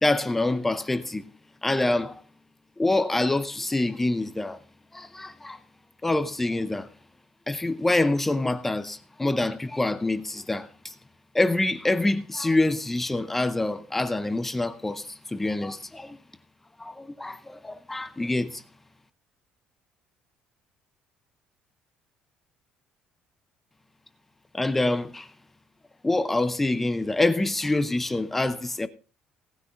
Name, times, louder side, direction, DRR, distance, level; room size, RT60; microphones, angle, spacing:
voice 1, 0.0-1.3 1.6-2.2 2.8-4.6 4.9-5.6 6.0-6.9 7.5-10.9 11.3-16.2 16.8-18.6 24.5-25.3 26.0-28.9, left 2 dB, 10° left, 0.6 m, -26 dB
18.0 x 9.9 x 2.5 m
cardioid pair, 150°, 2 cm